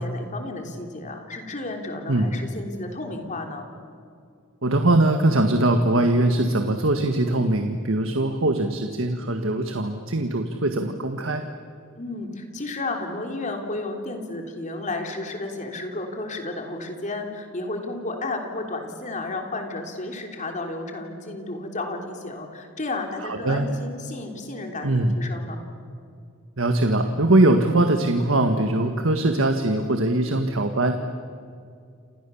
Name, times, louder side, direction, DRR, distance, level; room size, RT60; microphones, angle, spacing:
voice 1, 0.0-3.7 12.0-25.6, left 2 dB, 35° left, 3 dB, 3.5 m, -32 dB
voice 2, 4.6-11.4 23.2-23.7 24.8-25.2 26.6-31.0, right 2 dB, 70° right, 6 dB, 1.6 m, -21 dB
29.5 x 27.5 x 7.1 m, 2.4 s
head